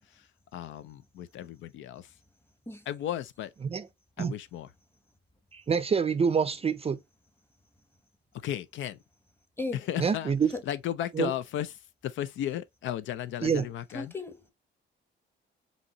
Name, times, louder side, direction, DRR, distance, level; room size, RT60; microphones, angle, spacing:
voice 1, 0.1-2.1 2.9-3.5 4.2-4.7 8.3-9.0 9.7-10.3 10.6-14.1, left 11 dB, 75° left, 0.4 m, -35 dB
voice 2, 5.5-7.0 10.0-10.5 11.2-11.3 13.4-13.6, right 6 dB, 30° right, 0.5 m, -26 dB
voice 3, 13.9-14.5, left 3 dB, 10° left, 1.1 m, -35 dB
5.2 x 2.9 x 2.9 m
cardioid pair, 90°, 20 cm